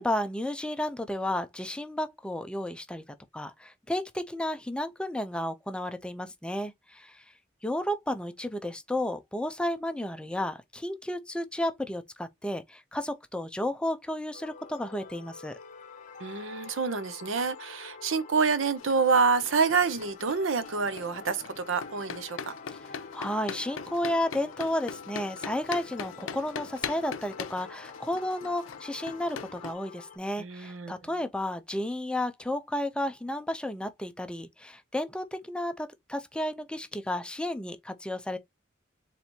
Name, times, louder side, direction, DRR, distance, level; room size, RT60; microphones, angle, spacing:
voice 1, 0.0-3.0 3.3-7.2 7.6-15.6 23.1-38.4, left 1 dB, 5° left, 0.4 m, -32 dB
sound 1, 14.3-30.2, left 5 dB, 40° left, 0.7 m, -48 dB
voice 2, 16.2-22.5 30.4-30.9, right 5 dB, 85° right, 0.7 m, -27 dB
sound 2, 18.8-29.7, left 6 dB, 85° left, 0.5 m, -41 dB
4.3 x 3.3 x 2.7 m
head